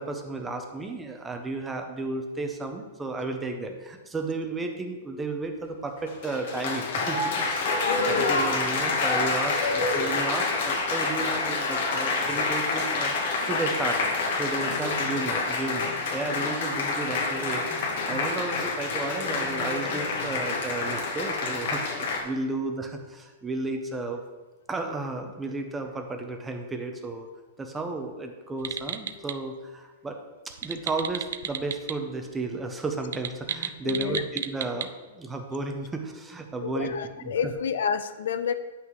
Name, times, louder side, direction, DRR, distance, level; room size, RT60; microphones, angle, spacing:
voice 1, 0.0-24.2 24.7-27.3 27.6-30.2 30.4-37.5, right 3 dB, 5° right, 4 dB, 0.5 m, -33 dB
Applause, 6.0-22.2, left 3 dB, 45° left, 1.1 m, -27 dB
voice 2, 7.9-8.5 33.8-34.2 36.6-38.5, left 7 dB, 70° left, 11 dB, 0.5 m, -29 dB
sound 1, 28.6-29.3 30.5-31.9 32.2-32.3 33.0-34.9, right 8 dB, 75° right, 0.4 m, -33 dB
9.7 x 5.8 x 3.0 m, 1.2 s
supercardioid pair, 180°, 0 cm